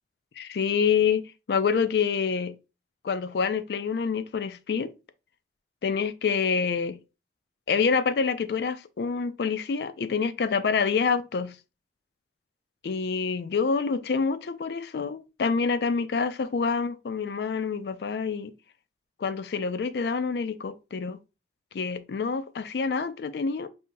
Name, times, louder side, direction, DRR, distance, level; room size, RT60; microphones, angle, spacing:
voice 1, 0.4-2.5 3.0-4.9 5.8-7.0 7.7-11.5 12.8-18.5 19.2-21.2 21.7-23.7, left 5 dB, 65° left, 0.4 m, -27 dB
5.4 x 2.7 x 2.6 m
head